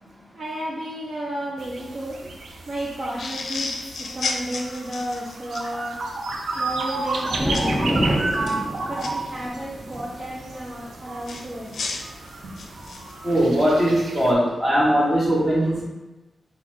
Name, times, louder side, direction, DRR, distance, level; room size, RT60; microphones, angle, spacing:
voice 1, 0.0-2.3 2.7-6.0 6.5-8.3 8.8-11.7 12.4-12.8, right 1 dB, 50° right, -6 dB, 0.7 m, -33 dB
sound 1, 1.6-14.3, right 3 dB, 85° right, 0.5 m, -32 dB
sound 2, 3.2-5.7 7.5-7.8 8.3-9.1 11.2-13.1, left 3 dB, 65° left, 0.5 m, -32 dB
sound 3, 6.3-12.9 13.8-13.9, equal, ahead, 0.5 m, -29 dB
voice 2, 13.2-15.8, equal, 15° right, -8 dB, 1.4 m, -20 dB
4.0 x 2.5 x 4.5 m, 1.1 s
wide cardioid pair, 170°, 0 cm